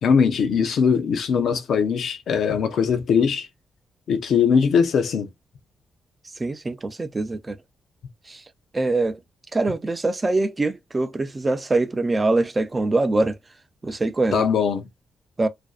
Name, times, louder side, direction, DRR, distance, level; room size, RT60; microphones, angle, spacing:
voice 1, 0.0-3.5 4.1-5.3 14.3-14.9, left 6 dB, 70° left, 0.5 m, -20 dB
voice 2, 6.4-7.6 8.3-8.4 8.7-9.2 9.5-13.3 13.8-14.4 15.4-15.5, right 2 dB, 25° right, 0.4 m, -23 dB
2.5 x 2.2 x 2.3 m
cardioid pair, 110°, 0 cm